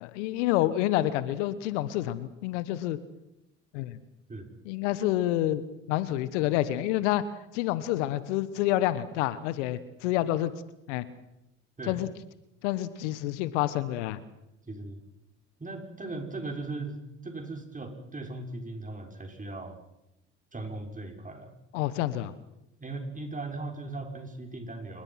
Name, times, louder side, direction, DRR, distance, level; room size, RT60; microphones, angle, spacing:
voice 1, 0.0-3.0 3.7-4.0 4.6-5.6 5.9-7.2 7.5-10.5 10.9-11.0 11.9-12.1 12.6-14.2 21.7-22.3, left 14 dB, 75° left, 15 dB, 1.4 m, -28 dB
voice 2, 14.7-15.0 15.6-19.8 20.5-21.5 22.8-25.0, right 2 dB, 20° right, 3 dB, 6.4 m, -38 dB
27.5 x 22.0 x 5.9 m, 0.90 s
hypercardioid pair, 60°, 35 cm